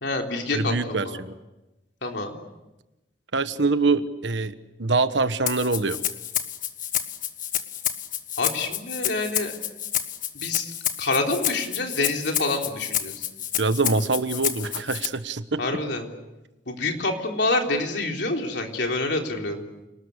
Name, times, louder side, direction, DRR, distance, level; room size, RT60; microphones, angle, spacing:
voice 1, 0.0-1.2 2.0-2.3 8.4-9.5 10.3-13.3 15.6-16.1 16.7-19.6, left 2 dB, 65° left, 2 dB, 3.8 m, -27 dB
voice 2, 0.5-1.3 3.3-6.0 13.6-15.6, right 3 dB, 80° right, 11 dB, 1.3 m, -24 dB
Rattle (instrument), 5.5-15.1, left 10 dB, 50° left, 1.6 m, -29 dB
28.5 x 19.5 x 8.3 m, 1.0 s
head